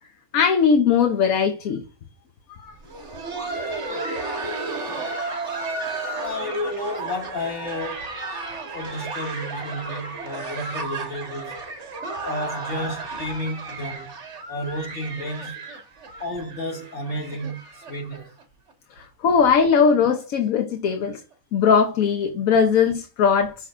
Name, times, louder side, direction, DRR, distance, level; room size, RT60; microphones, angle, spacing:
voice 1, 0.3-1.8 2.6-2.7 19.2-21.2 21.5-23.5, left 6 dB, 80° left, 1.3 m, -19 dB
Laughter, 2.7-18.4 18.7-18.8 19.4-19.5 20.0-20.2 21.3-21.4, right 3 dB, 55° right, 1.7 m, -33 dB
voice 2, 6.2-8.1 8.7-11.5 12.2-14.1 14.5-15.6 16.2-18.3, left 1 dB, 60° left, 2.5 m, -31 dB
6.2 x 6.0 x 2.5 m
omnidirectional pair, 1.4 m